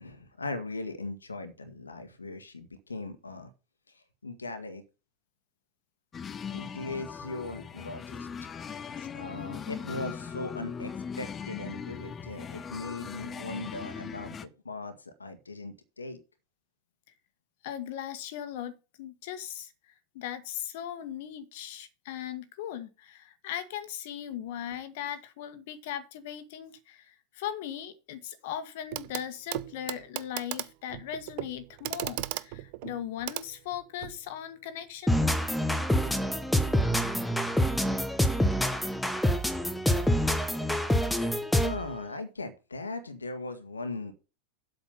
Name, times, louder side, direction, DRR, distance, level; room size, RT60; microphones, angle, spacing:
voice 1, 0.0-3.5 4.2-4.8 6.5-8.3 9.1-10.9 11.2-16.2 41.6-44.1, left 3 dB, 75° left, 1.7 m, -39 dB
sound 1, 6.1-14.5, left 6 dB, 20° left, 0.7 m, -39 dB
voice 2, 8.8-9.2 17.6-18.7 19.0-35.2, left 10 dB, 50° left, 1.6 m, -38 dB
Clock, 28.9-29.2 29.5-34.2 35.4-35.5, right 19 dB, 45° right, 0.6 m, -37 dB
sound 2, 35.1-41.9, equal, ahead, 1.3 m, -26 dB
8.1 x 6.9 x 5.8 m
figure-of-eight pair, 90°, 0 cm